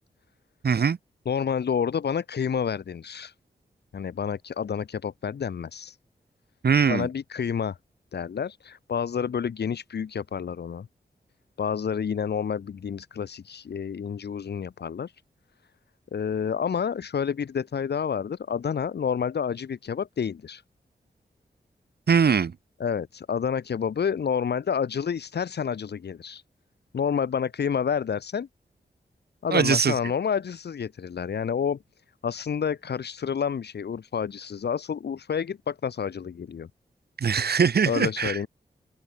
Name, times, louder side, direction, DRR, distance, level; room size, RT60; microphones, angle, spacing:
voice 1, 0.6-1.0 6.6-7.1 22.1-22.5 29.5-29.9 37.2-38.4, right 6 dB, 70° right, 1.8 m, -21 dB
voice 2, 1.3-3.3 3.9-6.0 6.9-7.8 8.1-10.9 11.6-15.2 16.1-20.6 22.8-26.4 26.9-28.5 29.4-31.8 32.2-36.7 37.8-38.5, left 7 dB, 80° left, 2.0 m, -29 dB
open air
cardioid pair, 50°, 17 cm